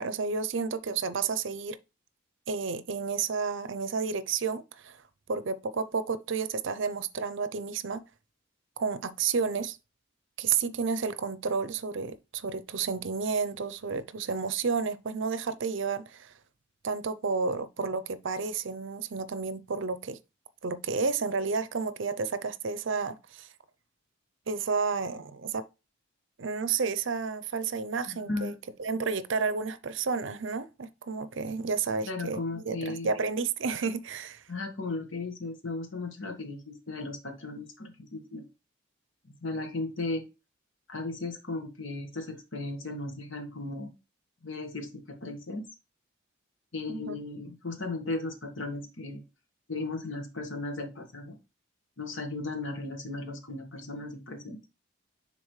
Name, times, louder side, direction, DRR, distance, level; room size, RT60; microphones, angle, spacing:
voice 1, 0.0-1.8 2.5-5.0 5.3-8.0 8.8-9.8 10.4-16.3 16.8-20.2 20.6-23.5 24.5-25.6 26.4-28.5 28.8-34.4 46.9-47.1, right 5 dB, 65° right, 0.6 m, -31 dB
voice 2, 28.1-28.6 32.0-33.1 34.5-38.5 39.4-40.3 40.9-43.9 44.4-45.7 46.7-49.2 49.7-51.4 52.0-54.6, left 2 dB, 65° left, 1.5 m, -36 dB
10.0 x 3.9 x 3.2 m
head